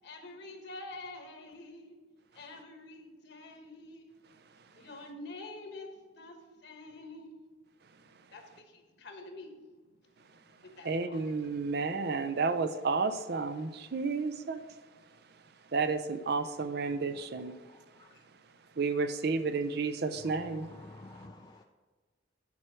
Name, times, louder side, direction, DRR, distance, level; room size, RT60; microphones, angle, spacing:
voice 1, 0.0-2.0 2.3-4.1 4.7-5.9 6.1-7.3 8.3-9.9 10.4-12.3, left 2 dB, 65° left, 1.4 m, -48 dB
voice 2, 10.8-14.6 15.7-17.5 18.8-20.7, right 4 dB, 60° right, 0.6 m, -31 dB
voice 3, 20.7-21.6, left 2 dB, 25° left, 0.4 m, -50 dB
9.6 x 4.5 x 6.1 m
head